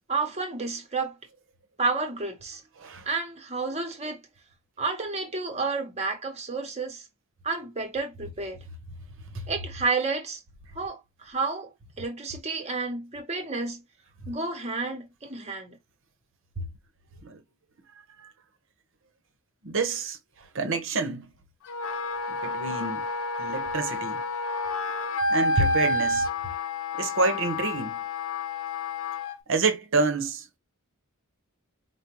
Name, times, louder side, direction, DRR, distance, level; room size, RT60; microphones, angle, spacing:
voice 1, 0.1-1.2 1.8-2.6 3.1-4.2 4.8-7.0 7.4-8.6 9.5-10.4 10.7-13.8 14.3-15.8, right 3 dB, 30° right, 1.0 m, -30 dB
voice 2, 19.6-20.2 20.5-21.3 22.4-23.0 23.4-24.2 25.3-26.2 27.0-28.0 29.5-30.6, right 3 dB, 65° right, 0.9 m, -27 dB
Wind instrument woodwind instrument, 21.7-29.4, left 2 dB, 65° left, 0.7 m, -29 dB
4.9 x 2.2 x 3.0 m
head